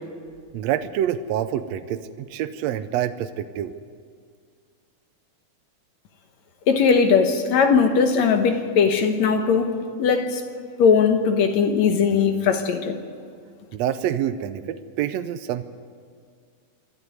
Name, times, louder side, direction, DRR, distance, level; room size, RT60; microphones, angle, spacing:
voice 1, 0.5-3.7 13.7-15.6, right 10 dB, 75° right, 10 dB, 1.6 m, -27 dB
voice 2, 6.7-9.7 10.0-10.4 10.8-12.9, left 6 dB, 65° left, 6 dB, 2.3 m, -19 dB
27.0 x 12.0 x 9.6 m, 2.1 s
omnidirectional pair, 3.6 m